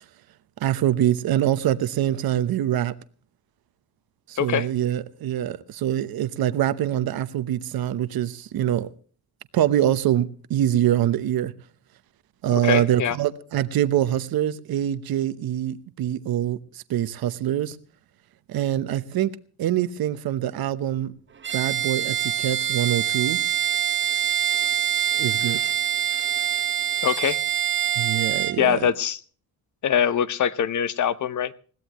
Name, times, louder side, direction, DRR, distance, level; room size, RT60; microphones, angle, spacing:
voice 1, 0.6-2.9 4.3-8.9 9.5-11.5 12.4-17.8 18.5-19.3 19.6-21.1 21.5-23.4 25.2-25.6 28.0-28.9, right 11 dB, 80° right, 1.0 m, -24 dB
voice 2, 4.4-4.7 12.5-13.2 27.0-27.4 28.6-29.2 29.8-31.5, left 9 dB, 55° left, 1.0 m, -23 dB
Bowed string instrument, 21.4-28.6, right 10 dB, 30° right, 1.0 m, -25 dB
21.0 x 17.0 x 3.0 m
cardioid pair, 150°, 36 cm